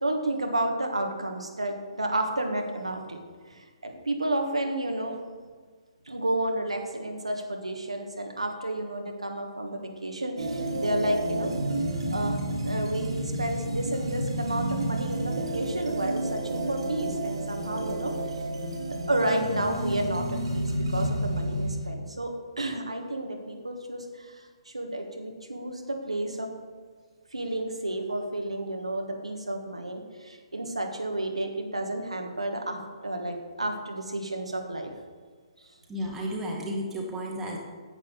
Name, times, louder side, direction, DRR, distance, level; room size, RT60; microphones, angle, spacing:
voice 1, 0.0-5.1 6.1-11.5 12.1-18.1 18.6-18.7 19.1-26.5 27.3-34.9, right 1 dB, 75° right, 3 dB, 1.3 m, -31 dB
sound 1, 10.4-21.9, right 1 dB, 60° right, 1.6 m, -30 dB
voice 2, 35.9-37.6, equal, 10° right, -3 dB, 1.6 m, -32 dB
10.0 x 8.3 x 3.8 m, 1.5 s
figure-of-eight pair, 130°, 3 cm